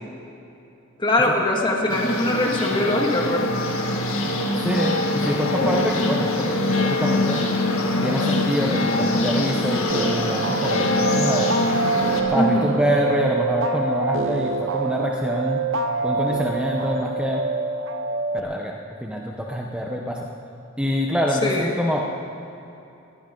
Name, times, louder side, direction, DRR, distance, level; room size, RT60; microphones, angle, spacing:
voice 1, 1.0-3.5 12.3-12.8 21.4-21.7, left 1 dB, 25° left, 0 dB, 2.0 m, -22 dB
sound 1, 1.9-12.2, left 2 dB, 80° left, 1.9 m, -23 dB
voice 2, 4.5-7.4 8.0-11.5 12.3-15.6 16.0-17.4 18.3-20.3 20.8-22.1, equal, 5° right, -1 dB, 0.9 m, -25 dB
sound 2, 9.9-18.4, right 4 dB, 65° right, 0.7 m, -25 dB
21.0 x 16.0 x 3.9 m, 2.8 s
head